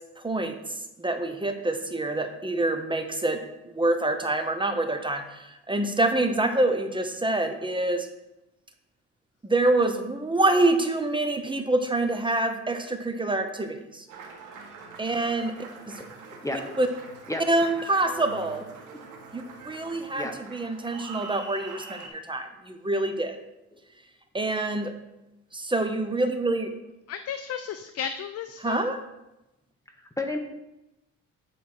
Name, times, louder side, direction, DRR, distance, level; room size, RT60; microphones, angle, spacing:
voice 1, 0.2-3.4 3.6-8.1 9.4-14.1 15.0-15.6 15.9-16.0 16.8-16.9 17.5-18.6 19.3-23.4 24.3-24.9 25.5-26.7 28.6-29.0, right 2 dB, 15° right, 7 dB, 0.9 m, -26 dB
Applause, 14.1-22.1, right 5 dB, 85° right, 1.5 m, -44 dB
voice 2, 16.3-16.8 17.3-18.3 20.1-20.3 22.6-22.7 23.7-23.8 29.9-30.4, left 1 dB, 10° left, 4 dB, 1.0 m, -34 dB
voice 3, 27.1-28.8, left 8 dB, 55° left, 9 dB, 0.5 m, -33 dB
9.4 x 4.9 x 4.5 m, 0.93 s
cardioid pair, 90°, 30 cm